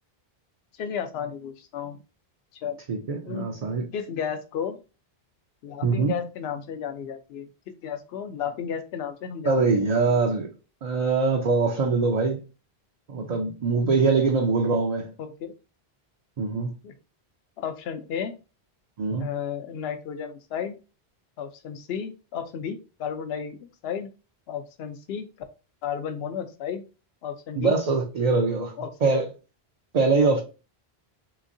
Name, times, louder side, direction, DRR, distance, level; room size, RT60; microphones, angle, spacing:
voice 1, 0.7-2.0 2.6-2.8 3.3-3.5 3.9-4.8 5.6-9.6 15.2-15.5 16.8-16.9 17.6-18.4 19.2-20.8 21.4-24.1 24.5-25.3 25.8-26.8 27.2-27.8 28.8-29.1, left 8 dB, 80° left, 9 dB, 0.8 m, -33 dB
voice 2, 2.9-3.9 5.8-6.2 9.4-10.5 10.8-12.4 13.1-15.1 16.4-16.7 19.0-19.3 27.6-28.7 29.0-29.3 29.9-30.4, right 4 dB, 50° right, 1 dB, 0.5 m, -23 dB
3.5 x 3.0 x 2.5 m, 0.32 s
omnidirectional pair, 1.1 m